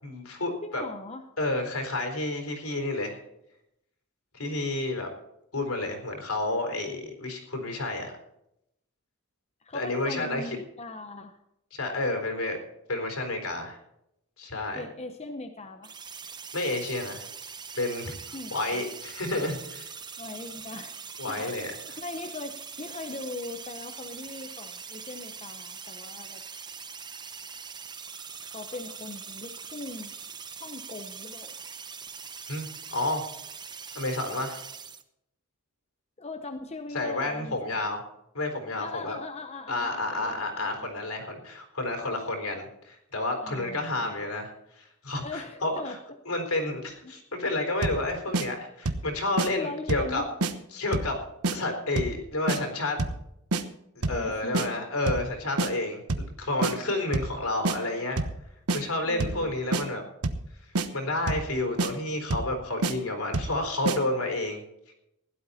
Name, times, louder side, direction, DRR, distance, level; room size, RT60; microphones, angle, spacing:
voice 1, 0.0-0.8 1.4-3.2 4.3-5.1 5.5-8.1 9.7-10.6 11.7-12.6 12.9-13.8 14.4-14.8 16.5-17.2 17.8-19.9 21.2-22.0 32.5-33.2 33.9-34.6 36.9-38.0 38.3-39.2 39.7-46.0 46.3-50.2 50.7-51.2 51.5-53.0 54.0-56.0 56.4-58.2 58.7-60.1 60.6-64.6 64.9-65.0, left 2 dB, 75° left, 3 dB, 4.0 m, -30 dB
voice 2, 0.6-1.2 9.6-11.4 14.7-15.9 18.3-18.8 20.2-26.4 28.4-30.1 30.6-31.5 36.2-37.6 38.8-41.2 43.4-44.1 45.2-46.0 47.0-47.1 49.6-50.3 54.0-54.8 59.0-59.5, left 2 dB, 30° left, 6 dB, 0.8 m, -40 dB
sound 1, 15.8-35.0, right 6 dB, 20° right, 0.8 m, -42 dB
sound 2, 47.8-48.0 48.3-48.5 48.9-49.1 49.4-49.5 49.9-50.1 50.4-50.5 50.9-51.1 51.4-51.6 52.0-52.2 52.5-52.6 53.0-53.2 53.5-53.6 54.0-54.2 54.5-54.7 55.1-55.3 55.6-55.7 56.1-56.3 56.6-56.7 57.1-57.4 57.6-57.8 58.2-58.4 58.7-58.8 59.2-59.4 59.7-59.8 60.2-60.5 60.7-60.9 61.3-61.5 61.8-61.9 62.3-62.5 62.8-62.9 63.3-63.6 63.9-64.0, right 3 dB, 90° right, 1.1 m, -27 dB
16.5 x 11.5 x 4.2 m, 0.80 s
head